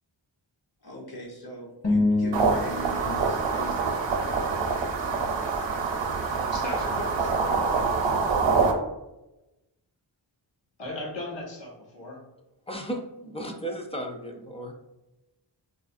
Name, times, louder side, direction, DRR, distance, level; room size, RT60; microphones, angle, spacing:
voice 1, 0.8-4.0, right 1 dB, 55° left, -2 dB, 1.1 m, -40 dB
sound 1, 1.8-4.5, left 2 dB, 35° left, 0.8 m, -28 dB
sound 2, 2.3-8.7, right 4 dB, 75° right, 0.6 m, -26 dB
voice 2, 6.5-8.1 10.8-12.2, left 2 dB, 75° left, -3 dB, 1.0 m, -38 dB
voice 3, 12.7-14.7, right 1 dB, 15° left, 2 dB, 0.4 m, -35 dB
4.6 x 2.4 x 2.5 m, 0.98 s
wide cardioid pair, 95°, 44 cm